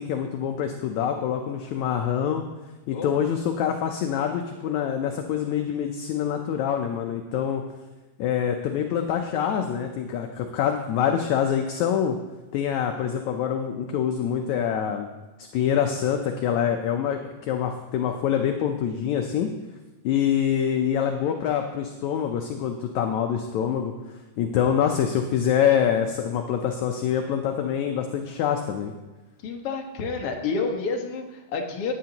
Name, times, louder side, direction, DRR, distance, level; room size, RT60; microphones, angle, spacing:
voice 1, 0.0-2.4 2.9-7.6 8.2-12.2 12.5-15.1 15.4-19.5 20.0-23.9 24.4-28.9, left 8 dB, 75° left, 4 dB, 1.9 m, -25 dB
voice 2, 29.4-31.9, left 4 dB, 55° left, 1 dB, 1.9 m, -29 dB
17.0 x 9.5 x 2.9 m, 1.1 s
omnidirectional pair, 3.8 m